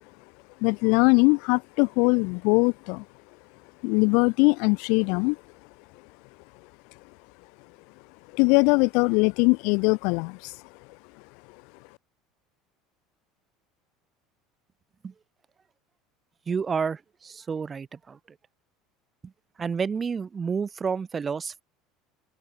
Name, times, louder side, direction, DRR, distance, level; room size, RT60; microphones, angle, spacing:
voice 1, 0.6-3.0 3.8-5.4 8.3-10.6, left 33 dB, 60° left, 3.0 m, -21 dB
voice 2, 16.5-18.2 19.2-19.3 19.6-21.6, right 6 dB, 15° right, 7.2 m, -30 dB
open air
cardioid pair, 175°, 0 cm